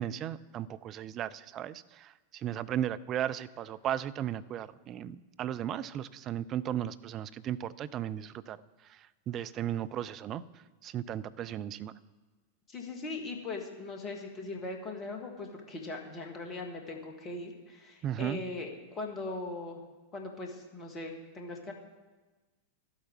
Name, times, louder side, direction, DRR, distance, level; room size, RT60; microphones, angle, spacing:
voice 1, 0.0-10.4 10.8-11.9 18.0-18.4, right 11 dB, 30° right, 14 dB, 0.4 m, -36 dB
voice 2, 12.7-19.8 20.1-21.7, left 2 dB, 25° left, 2 dB, 1.7 m, -40 dB
12.0 x 8.1 x 4.6 m, 1.2 s
figure-of-eight pair, 90°, 0 cm